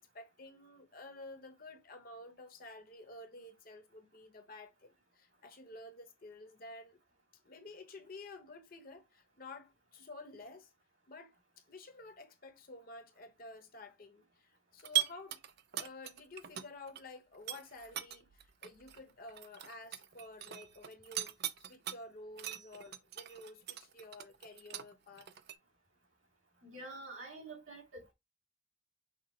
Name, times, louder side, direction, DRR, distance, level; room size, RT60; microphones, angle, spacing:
voice 1, 0.1-7.0 7.4-10.7 11.1-15.4 15.7-21.4 21.7-25.3, left 2 dB, 45° left, 0.9 m, -51 dB
sound 1, 14.8-17.0 17.3-22.0 22.4-25.5, right 13 dB, 55° right, 0.5 m, -39 dB
voice 2, 26.6-28.1, right 2 dB, 75° right, 2.4 m, -47 dB
6.0 x 2.0 x 4.3 m
head